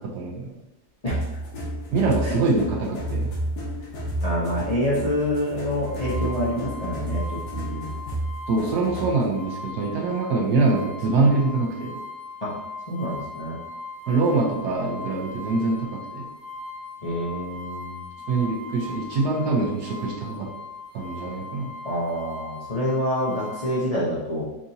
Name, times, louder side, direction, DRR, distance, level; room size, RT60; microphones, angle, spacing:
voice 1, 0.1-0.5 1.9-3.3 8.5-11.9 14.1-15.8 16.1-16.2 18.3-20.5 20.9-21.7, right 3 dB, 70° right, -2 dB, 1.4 m, -24 dB
sound 1, 1.1-9.3, right 1 dB, 70° left, 1.5 m, -31 dB
voice 2, 4.2-7.9 12.4-12.5 12.9-13.6 17.0-18.0 21.8-24.4, equal, 45° left, -8 dB, 0.5 m, -27 dB
sound 2, 5.8-23.8, left 3 dB, 40° right, 1.4 m, -39 dB
5.9 x 2.6 x 2.8 m, 0.94 s
omnidirectional pair, 1.9 m